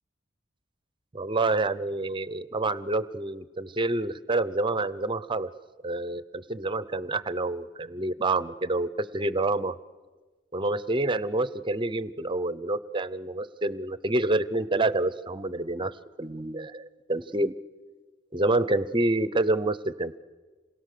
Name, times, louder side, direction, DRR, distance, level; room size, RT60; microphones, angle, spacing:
voice 1, 1.1-5.5 5.8-9.7 10.5-17.5 18.3-20.2, right 2 dB, 25° right, 16 dB, 0.7 m, -28 dB
27.5 x 21.5 x 6.7 m, 1.3 s
head